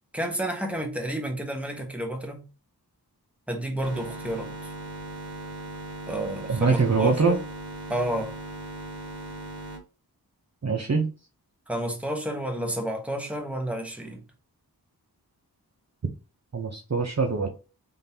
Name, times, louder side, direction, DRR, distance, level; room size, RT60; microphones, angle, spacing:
voice 1, 0.1-2.4 3.5-4.7 6.1-7.4 7.9-8.3 11.7-14.2, right 1 dB, 5° right, 1.2 m, -30 dB
sound 1, 3.8-9.8, right 1 dB, 70° right, 2.2 m, -38 dB
voice 2, 6.5-7.4 10.6-11.1 16.5-17.5, right 4 dB, 45° right, 0.7 m, -23 dB
3.8 x 3.5 x 2.8 m
wide cardioid pair, 50°, 39 cm